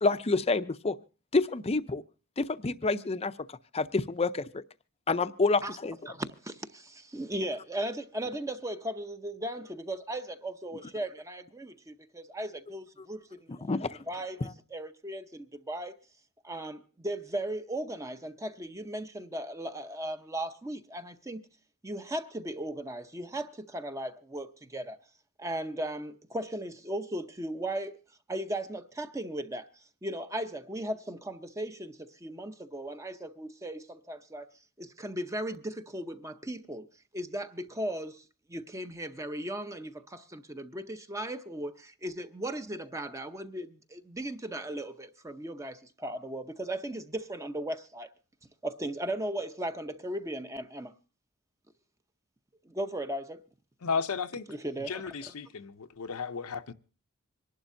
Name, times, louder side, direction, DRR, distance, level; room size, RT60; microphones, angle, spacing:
voice 1, 0.0-1.0 1.3-2.0 2.4-3.3 3.7-4.6 5.1-6.0 13.7-14.0, left 3 dB, 25° left, 0.5 m, -28 dB
voice 2, 6.1-14.4 14.7-16.0 16.4-21.4 21.8-25.0 25.4-28.0 28.3-29.7 30.0-34.5 34.8-36.9 37.1-38.2 38.5-48.1 48.6-50.9 52.7-53.4 54.5-55.3, right 1 dB, 15° right, 0.7 m, -37 dB
voice 3, 53.8-54.5 54.8-56.7, left 5 dB, 70° left, 0.7 m, -34 dB
26.0 x 11.5 x 2.6 m
head